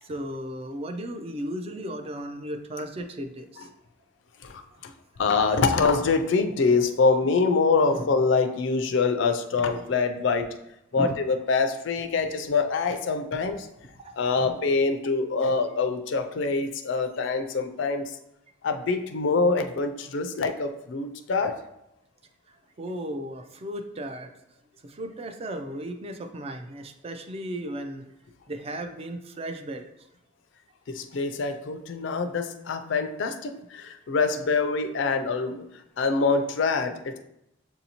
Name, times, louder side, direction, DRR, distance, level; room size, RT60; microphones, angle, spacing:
voice 1, 0.0-3.7 7.9-8.1 11.0-11.1 14.0-14.5 22.5-24.3 24.8-28.1 28.5-29.9 33.8-33.9, right 1 dB, 30° right, 7 dB, 0.4 m, -35 dB
voice 2, 4.4-4.9 5.2-10.5 10.9-13.7 14.1-18.2 18.6-21.6 30.9-35.6 36.0-37.2, left 4 dB, 65° left, 7 dB, 0.4 m, -25 dB
6.9 x 2.7 x 2.8 m, 0.82 s
head